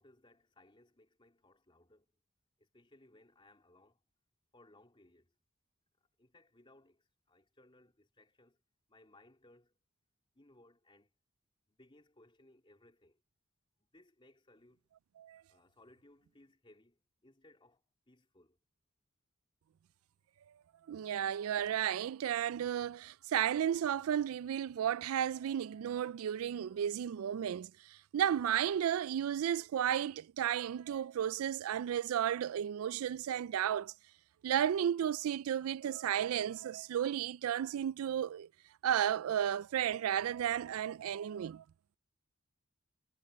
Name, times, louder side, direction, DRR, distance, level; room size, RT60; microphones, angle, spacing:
voice 1, 0.0-2.2 2.6-4.0 4.5-5.3 6.2-8.6 8.9-9.7 10.3-11.1 11.7-13.2 13.8-14.8 15.5-18.6, left 1 dB, 25° left, 3.5 m, -64 dB
voice 2, 20.9-33.9 34.4-38.5 38.8-41.6, right 9 dB, 85° right, 0.3 m, -33 dB
head